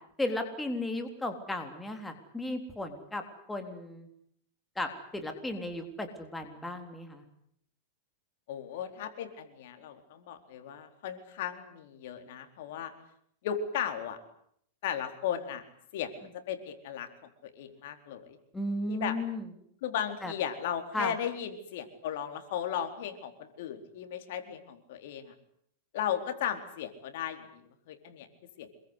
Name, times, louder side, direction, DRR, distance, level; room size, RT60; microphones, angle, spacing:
voice 1, 0.2-3.2 3.5-4.1 4.8-7.2 18.5-19.5 20.2-20.3 20.9-21.1, left 1 dB, 5° left, 5 dB, 3.7 m, -35 dB
voice 2, 8.5-12.9 13.4-14.2 14.8-15.6 15.9-17.1 17.4-18.4 18.9-19.2 19.8-25.3 25.9-28.3 28.6-28.7, left 9 dB, 65° left, 7 dB, 4.3 m, -36 dB
27.0 x 22.5 x 8.3 m, 0.69 s
supercardioid pair, 145°, 0 cm